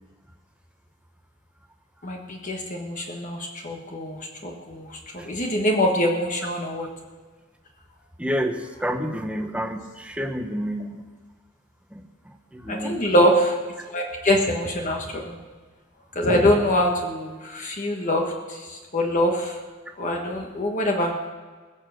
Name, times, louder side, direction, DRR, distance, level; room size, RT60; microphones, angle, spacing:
voice 1, 2.0-4.2 4.4-4.9 5.1-6.9 12.7-13.6 13.9-15.4 16.1-19.6 20.0-21.3, equal, 35° left, 1 dB, 1.4 m, -24 dB
voice 2, 8.2-11.0 11.9-12.0 12.5-13.0, equal, 5° right, 4 dB, 1.1 m, -29 dB
21.0 x 7.3 x 6.4 m, 1.4 s
head